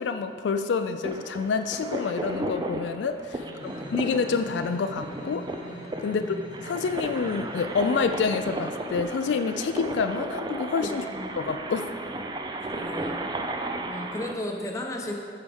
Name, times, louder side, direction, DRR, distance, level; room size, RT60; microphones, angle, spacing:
voice 1, 0.0-5.5 6.0-6.4 6.6-11.0 11.4-11.9, left 5 dB, 75° left, 8 dB, 0.3 m, -28 dB
sound 1, 1.0-14.3, right 1 dB, 25° right, 0.4 m, -34 dB
voice 2, 3.4-4.0 5.9-6.5 10.8-11.3 12.6-13.2 13.9-15.1, left 1 dB, 15° left, 1 dB, 0.8 m, -36 dB
sound 2, 3.6-8.8, equal, 45° right, 2.2 m, -44 dB
13.5 x 4.8 x 3.5 m, 2.2 s
head